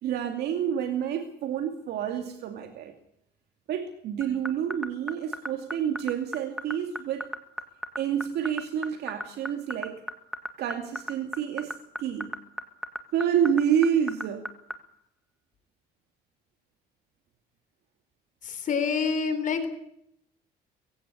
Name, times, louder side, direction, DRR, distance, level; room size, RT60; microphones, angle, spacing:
voice 1, 0.0-2.9 3.7-7.3 8.0-10.0 10.6-12.3 13.1-14.5, right 9 dB, 75° right, 5 dB, 2.5 m, -28 dB
sound 1, 4.2-14.7, equal, ahead, 2.0 m, -32 dB
voice 2, 18.4-19.7, left 5 dB, 50° left, 9 dB, 3.8 m, -27 dB
23.0 x 16.0 x 8.6 m, 0.75 s
cardioid pair, 110°, 17 cm